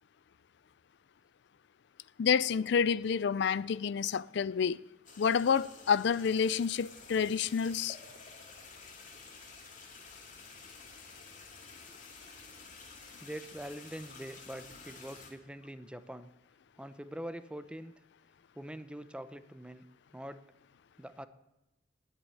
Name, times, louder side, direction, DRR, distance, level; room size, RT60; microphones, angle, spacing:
voice 1, 2.2-4.8 5.2-8.0, left 6 dB, 65° left, 0.4 m, -29 dB
sound 1, 5.0-15.3, left 4 dB, 45° left, 2.2 m, -51 dB
voice 2, 13.2-16.3 16.8-17.9 18.6-19.8 20.1-20.4 21.0-21.3, right 1 dB, 5° right, 0.6 m, -44 dB
10.5 x 8.5 x 9.8 m
head